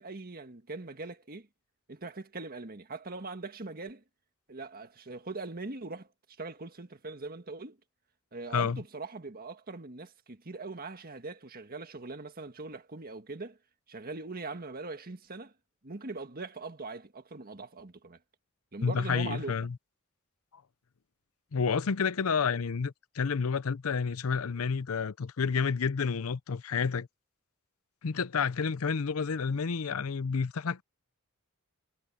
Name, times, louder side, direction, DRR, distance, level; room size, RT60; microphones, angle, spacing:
voice 1, 0.0-1.5 1.9-4.0 4.5-6.1 6.4-7.8 8.3-13.6 13.9-15.5 15.8-18.2 18.7-19.7, right 3 dB, 45° right, 1.7 m, -41 dB
voice 2, 18.8-19.8 21.5-27.1 28.0-30.8, left 5 dB, 75° left, 0.6 m, -30 dB
head